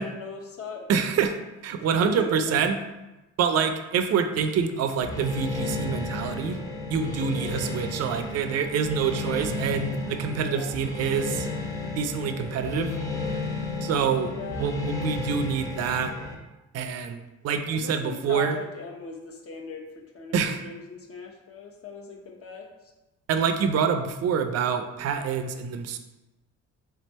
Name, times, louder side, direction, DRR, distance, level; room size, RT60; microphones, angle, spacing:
voice 1, 0.0-0.9 1.8-2.6 7.0-7.4 10.3-10.8 14.3-14.7 17.7-22.7, left 5 dB, 50° left, 1 dB, 1.0 m, -39 dB
voice 2, 0.9-1.4 1.6-2.8 3.4-6.6 6.9-11.5 12.0-12.9 13.8-14.3 14.6-16.1 16.7-18.5 20.3-20.6 23.3-26.0, right 6 dB, 55° right, 7 dB, 0.5 m, -26 dB
sound 1, 5.0-16.3, left 2 dB, 10° left, 0.9 m, -33 dB
3.7 x 3.3 x 4.2 m, 1.0 s
cardioid pair, 90°, 30 cm